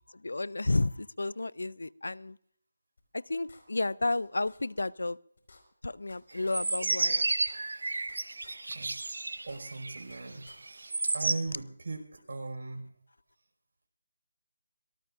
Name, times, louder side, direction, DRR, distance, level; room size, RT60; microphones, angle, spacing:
voice 1, 0.2-2.4 3.1-5.2 5.8-7.3, left 2 dB, 85° left, 22 dB, 0.5 m, -32 dB
sound 1, 3.0-3.1 3.5-4.2 4.5-4.6 5.0-5.1 5.4-6.2 6.5-6.6 7.0-7.1 7.4-8.2 8.4-8.5 9.0-9.1 9.4-10.2 10.5-10.6, left 3 dB, 60° left, 4.8 m, -57 dB
sound 2, 6.3-11.3, right 3 dB, 80° right, 1.4 m, -31 dB
voice 2, 8.7-9.0 9.4-12.9, right 3 dB, 60° right, 3 dB, 5.2 m, -39 dB
24.0 x 18.5 x 2.5 m, 0.66 s
figure-of-eight pair, 165°, 0 cm